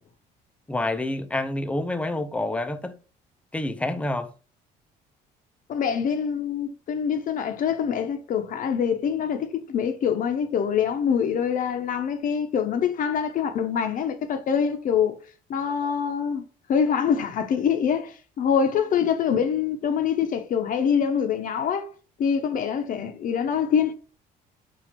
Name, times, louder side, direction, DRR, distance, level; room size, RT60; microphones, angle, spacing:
voice 1, 0.7-3.0 3.5-4.3, left 2 dB, 5° left, 0.4 m, -28 dB
voice 2, 5.7-15.2 15.5-21.9 22.2-23.9, left 7 dB, 55° left, 0.6 m, -25 dB
4.3 x 2.4 x 4.2 m
cardioid pair, 110°, 17 cm